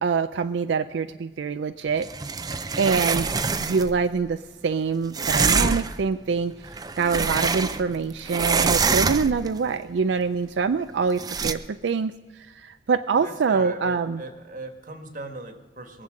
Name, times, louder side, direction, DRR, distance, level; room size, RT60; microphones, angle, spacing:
voice 1, 0.0-2.1 2.8-3.3 3.6-6.5 7.0-12.1 12.6-14.2, right 5 dB, 85° right, 10 dB, 0.4 m, -25 dB
sound 1, 2.0-3.9 5.1-6.0 6.6-8.0 8.3-9.5 11.2-11.5, right 4 dB, 20° right, 0.4 m, -25 dB
voice 2, 3.6-3.9 13.1-16.0, right 2 dB, 45° right, 6 dB, 1.4 m, -38 dB
22.0 x 7.5 x 6.4 m, 1.3 s
head